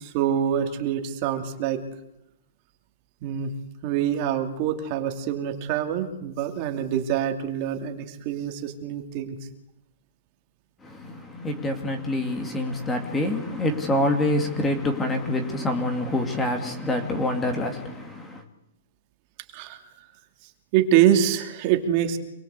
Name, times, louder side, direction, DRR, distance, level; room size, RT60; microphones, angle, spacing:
voice 1, 0.0-1.8 3.2-3.5 3.8-9.4 19.5-19.8 20.4-22.2, right 10 dB, 25° right, 2.6 m, -25 dB
voice 2, 10.8-18.4, left 1 dB, 10° left, 2.2 m, -26 dB
28.0 x 22.0 x 8.2 m
hypercardioid pair, 175°, 0 cm